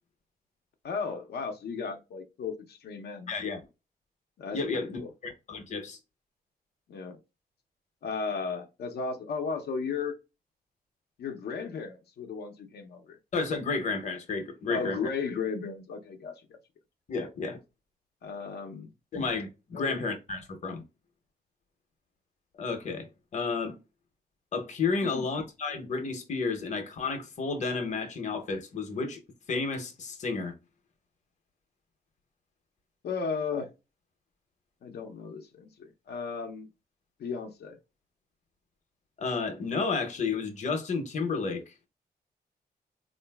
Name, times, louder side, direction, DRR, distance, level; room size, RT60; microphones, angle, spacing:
voice 1, 0.8-3.3 4.4-5.1 6.9-7.2 8.0-10.2 11.2-13.2 14.7-16.4 17.2-17.3 18.2-18.9 19.7-20.0 25.0-25.3 33.0-33.7 34.8-36.7 37.2-37.8, left 5 dB, 90° left, 0.6 m, -35 dB
voice 2, 3.3-3.6 4.5-6.0 13.3-15.0 17.1-17.6 19.1-20.8 22.6-23.7 24.5-29.2 29.5-30.5 39.2-41.7, left 4 dB, 45° left, 0.7 m, -31 dB
3.8 x 2.5 x 2.2 m
wide cardioid pair, 165°, 16 cm